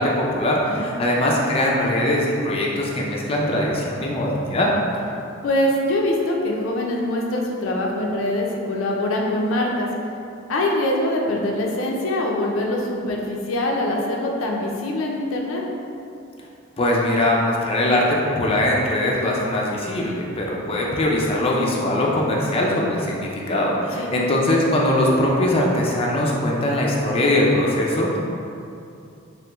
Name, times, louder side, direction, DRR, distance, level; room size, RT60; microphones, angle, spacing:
voice 1, 0.0-4.7 16.8-28.2, left 1 dB, 30° left, -3 dB, 0.4 m, -21 dB
voice 2, 5.4-9.9 10.5-15.6 23.9-24.1, left 1 dB, 85° left, -1 dB, 0.5 m, -23 dB
3.4 x 3.1 x 2.9 m, 2.6 s
head